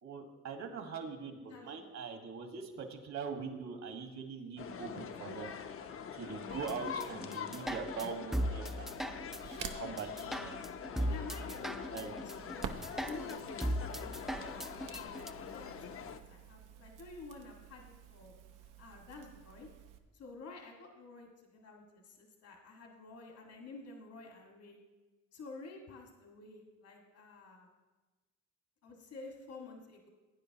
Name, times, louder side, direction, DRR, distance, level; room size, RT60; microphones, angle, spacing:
voice 1, 0.0-5.5 6.1-9.3 9.7-10.6 11.9-12.1, right 5 dB, 65° right, 4 dB, 1.7 m, -42 dB
voice 2, 1.4-1.9 10.3-10.7 11.1-12.7 13.1-15.7 16.0-18.3 18.6-19.7 20.1-24.8 25.3-27.7 28.8-30.1, left 3 dB, 70° left, 0 dB, 1.8 m, -51 dB
sound 1, 4.6-16.2, left 7 dB, 45° left, 0.7 m, -44 dB
sound 2, 6.5-15.3, equal, ahead, 0.4 m, -38 dB
Crackle, 9.0-20.0, right 8 dB, 85° right, 0.9 m, -50 dB
17.0 x 9.2 x 2.9 m, 1.2 s
cardioid pair, 90°, 30 cm